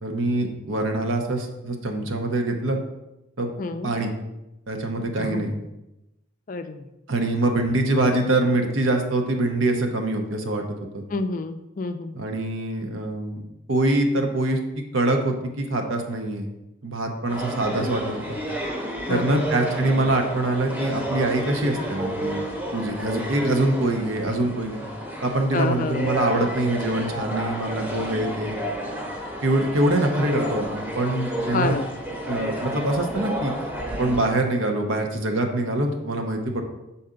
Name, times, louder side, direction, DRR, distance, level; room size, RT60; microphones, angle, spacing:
voice 1, 0.0-2.8 3.4-3.5 3.8-4.1 4.7-5.5 7.1-10.6 10.9-11.0 12.1-13.4 13.7-14.6 14.9-16.5 16.8-18.4 19.1-22.4 22.7-24.8 25.2-28.5 29.4-31.7 32.3-33.5 33.9-36.6, right 1 dB, 85° right, 3 dB, 0.8 m, -24 dB
voice 2, 3.6-3.9 5.2-5.4 6.5-6.8 11.1-12.2 19.1-19.4 25.5-26.2 31.5-31.9, left 3 dB, 40° left, 8 dB, 0.4 m, -28 dB
sound 1, 17.3-34.3, right 1 dB, 10° right, 0.8 m, -31 dB
6.6 x 4.2 x 3.7 m, 0.95 s
head